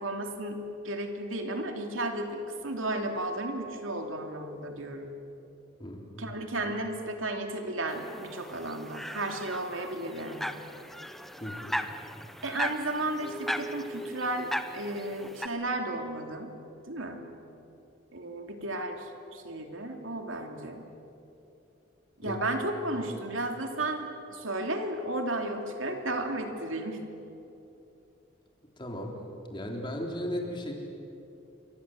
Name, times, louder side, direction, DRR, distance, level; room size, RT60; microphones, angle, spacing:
voice 1, 0.0-5.1 6.2-10.6 12.4-16.5 16.9-17.2 18.1-20.8 22.2-27.1, right 1 dB, 80° right, 4 dB, 3.0 m, -34 dB
voice 2, 5.8-6.3 11.4-11.8 22.2-22.4 23.0-23.1 28.8-29.2 29.5-30.8, equal, 25° left, 1 dB, 3.5 m, -36 dB
sound 1, 7.9-15.5, equal, ahead, 0.8 m, -37 dB
28.5 x 24.0 x 7.9 m, 2.8 s
head